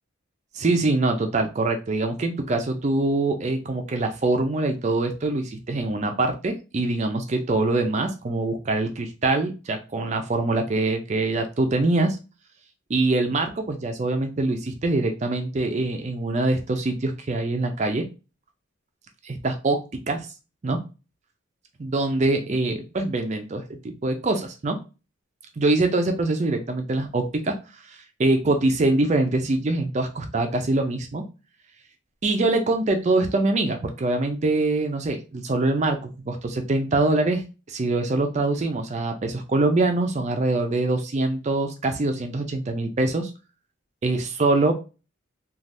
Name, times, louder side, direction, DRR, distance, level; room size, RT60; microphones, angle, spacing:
voice 1, 0.5-12.2 12.9-18.1 19.2-20.3 20.6-20.8 21.8-24.8 25.6-27.6 27.9-31.3 32.2-37.4 37.7-43.3 44.0-44.7, right 2 dB, 35° right, 6 dB, 0.4 m, -24 dB
3.3 x 2.3 x 2.6 m, 0.30 s
head